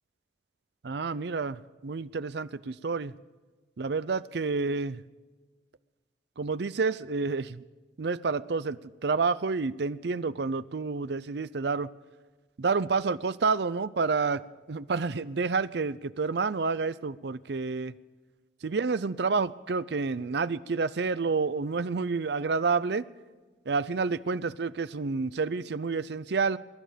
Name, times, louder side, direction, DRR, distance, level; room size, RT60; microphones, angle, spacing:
voice 1, 0.8-3.1 3.8-5.0 6.4-7.6 8.0-11.9 12.6-14.4 14.7-17.9 18.6-23.1 23.7-26.6, right 4 dB, 60° right, 0.5 m, -29 dB
22.5 x 11.5 x 5.1 m
head